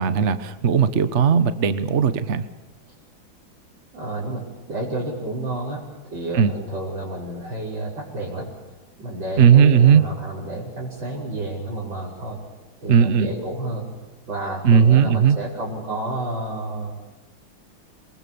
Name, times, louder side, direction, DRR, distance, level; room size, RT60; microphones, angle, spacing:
voice 1, 0.0-2.4 6.3-6.5 9.4-10.0 12.9-13.3 14.6-15.4, right 7 dB, 40° right, 12 dB, 1.2 m, -16 dB
voice 2, 3.9-4.4 4.7-8.5 9.0-12.4 12.8-13.9 14.3-16.9, right 2 dB, 65° right, -7 dB, 6.5 m, -30 dB
28.0 x 23.5 x 7.1 m, 1.1 s
omnidirectional pair, 2.2 m